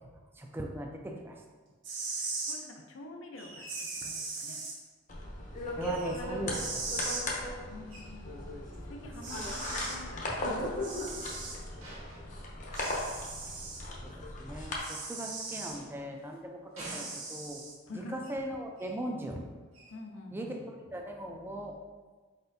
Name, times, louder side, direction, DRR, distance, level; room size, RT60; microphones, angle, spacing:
voice 1, 0.4-1.4 4.0-4.1 5.8-6.9 14.0-17.6 17.9-19.4 20.3-21.8, right 1 dB, 10° right, 1 dB, 0.4 m, -39 dB
sound 1, 1.7-2.6 3.7-4.7 6.5-7.2 8.7-8.8 9.2-10.0 10.8-11.6 12.7-13.8 14.8-15.8 16.8-17.7, right 3 dB, 60° right, 1.0 m, -38 dB
voice 2, 2.2-4.6 7.7-8.5 8.9-11.0 17.9-18.2 19.9-20.7, left 2 dB, 70° left, 2 dB, 0.6 m, -48 dB
sound 2, 3.3-4.2 5.8-6.5 7.9-8.2 9.3-10.3 11.8-13.0 15.2-16.4 16.8-17.7 18.2-18.5 18.8-19.1 19.7-20.0, right 1 dB, 85° right, 1.4 m, -50 dB
sound 3, 5.1-14.8, left 1 dB, 40° left, 0.8 m, -37 dB
4.4 x 4.2 x 2.6 m, 1.4 s
head